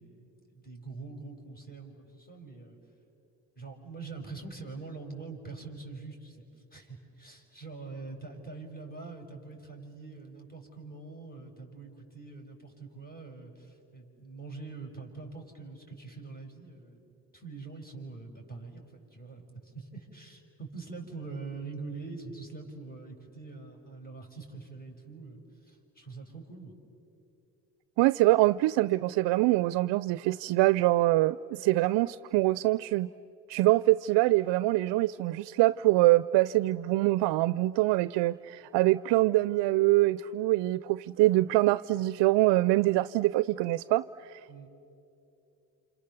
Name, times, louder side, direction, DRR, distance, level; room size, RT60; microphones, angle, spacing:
voice 1, 0.0-2.8 3.6-17.1 17.3-26.8 44.5-44.7, right 4 dB, 20° left, 0 dB, 6.0 m, -44 dB
voice 2, 28.0-33.1 33.5-44.4, right 18 dB, 80° right, 17 dB, 0.5 m, -24 dB
29.0 x 27.0 x 7.0 m, 2.8 s
supercardioid pair, 65°, 42 cm